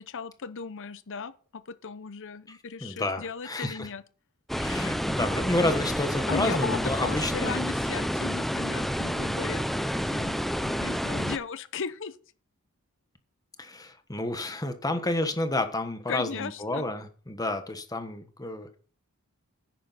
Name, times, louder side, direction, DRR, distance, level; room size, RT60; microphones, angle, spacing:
voice 1, 0.0-4.0 6.3-9.7 10.1-12.2 16.1-16.8, left 5 dB, 60° left, 0.8 m, -36 dB
voice 2, 2.5-3.9 4.6-7.6 10.8-10.9 13.6-18.8, left 2 dB, 15° left, 1.3 m, -30 dB
sound 1, 4.5-11.4, equal, ahead, 0.5 m, -29 dB
10.0 x 9.0 x 4.1 m
head